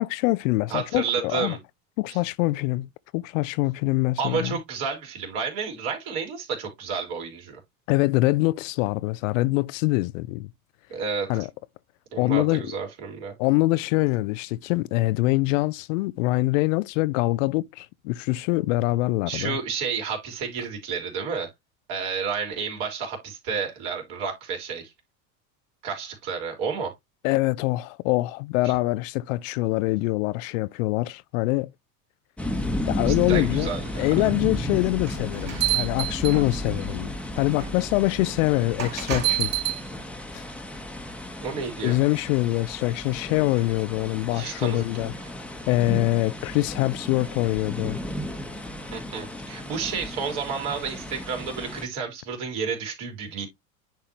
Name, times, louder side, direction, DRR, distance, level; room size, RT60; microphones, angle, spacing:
voice 1, 0.0-1.6 2.0-4.6 7.9-10.5 11.3-11.5 12.2-12.6 13.4-19.6 27.2-31.7 32.9-33.7 34.0-39.5 40.3-40.4 41.8-45.1 45.7-48.0, left 20 dB, 60° left, 0.5 m, -24 dB
voice 2, 0.7-1.6 2.1-2.2 4.2-7.6 10.9-11.5 12.1-13.3 19.3-21.5 21.9-24.9 25.8-26.9 33.1-34.3 35.5-35.7 41.4-42.0 44.3-44.8 48.9-53.5, right 6 dB, 55° right, 3.7 m, -31 dB
sound 1, 32.4-51.9, left 1 dB, 5° left, 1.0 m, -34 dB
sound 2, 35.0-36.8 37.6-37.7 38.8-39.8, right 13 dB, 35° right, 3.7 m, -27 dB
10.0 x 3.6 x 2.9 m
hypercardioid pair, 90°, 44 cm